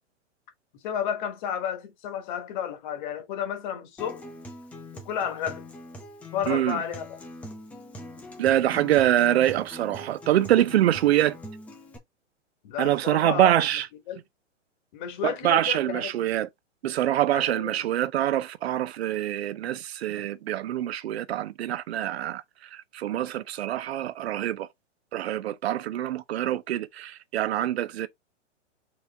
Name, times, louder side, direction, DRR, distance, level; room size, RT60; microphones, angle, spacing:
voice 1, 0.8-4.3 4.9-5.6 6.3-7.2 12.6-13.7 14.1-14.2 14.9-16.1 17.3-17.8, left 9 dB, 40° left, 1.2 m, -32 dB
Acoustic guitar, 4.0-12.0, left 1 dB, 5° left, 0.4 m, -43 dB
voice 2, 6.5-6.8 8.4-11.4 12.8-13.9 15.2-16.5 16.8-22.4 22.7-24.7 25.1-28.1, right 12 dB, 55° right, 0.7 m, -25 dB
4.0 x 3.1 x 3.3 m
hypercardioid pair, 125°, 37 cm